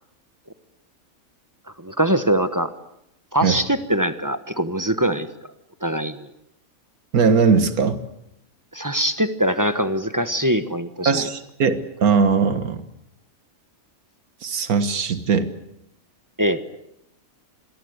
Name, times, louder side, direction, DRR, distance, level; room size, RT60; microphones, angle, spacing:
voice 1, 1.8-2.7 3.3-5.3 5.8-6.3 8.7-11.3 16.4-16.6, right 1 dB, 15° right, 10 dB, 1.2 m, -22 dB
voice 2, 7.1-8.0 11.1-12.8 14.4-15.5, right 5 dB, 85° right, 11 dB, 1.9 m, -19 dB
26.5 x 22.0 x 8.1 m, 0.81 s
omnidirectional pair, 1.5 m